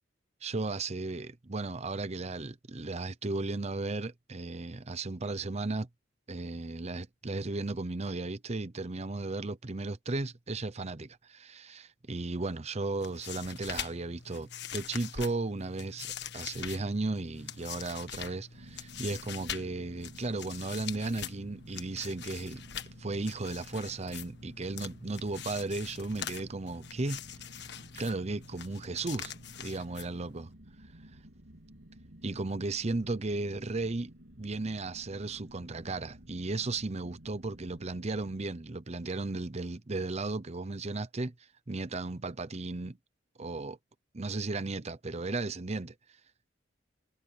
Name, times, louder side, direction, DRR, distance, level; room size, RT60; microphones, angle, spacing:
voice 1, 0.4-5.9 6.3-22.6 23.0-27.2 28.0-30.5 32.2-34.1 34.4-41.3 41.7-43.0 43.4-43.8 44.1-45.9, right 3 dB, 35° right, 0.8 m, -35 dB
sound 1, 12.9-30.5, left 8 dB, 65° left, 1.6 m, -44 dB
sound 2, 18.5-38.5, right 1 dB, 85° right, 3.5 m, -54 dB
head